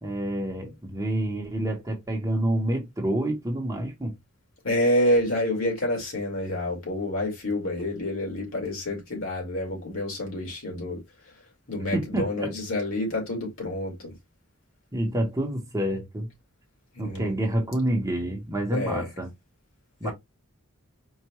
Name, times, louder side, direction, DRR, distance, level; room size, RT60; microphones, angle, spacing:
voice 1, 0.0-4.1 11.9-12.5 14.9-16.3 17.0-19.3 20.0-20.1, right 1 dB, 15° right, 1.0 m, -28 dB
voice 2, 4.6-11.0 11.7-14.1 17.0-17.3 18.7-19.1 20.0-20.1, left 1 dB, 65° left, 2.2 m, -28 dB
4.6 x 2.5 x 3.0 m
head